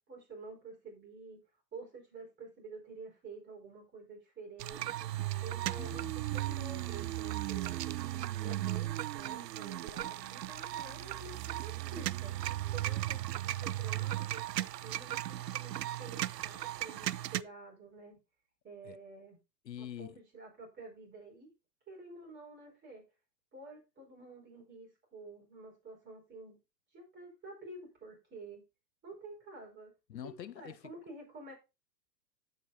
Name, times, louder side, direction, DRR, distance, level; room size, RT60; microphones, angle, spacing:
voice 1, 0.1-1.4 1.7-5.1 5.4-8.1 8.4-12.3 12.7-18.2 18.6-19.4 19.8-21.5 21.9-23.0 23.5-26.6 26.9-28.6 29.0-29.9 30.6-31.5, right 3 dB, 20° right, 5.1 m, -50 dB
sound 1, 4.6-17.4, right 14 dB, 75° right, 0.5 m, -36 dB
voice 2, 5.8-6.1 18.8-19.0 19.6-20.2 30.1-30.9, left 10 dB, 90° left, 0.7 m, -45 dB
15.5 x 5.2 x 2.6 m
hypercardioid pair, 115°, 49 cm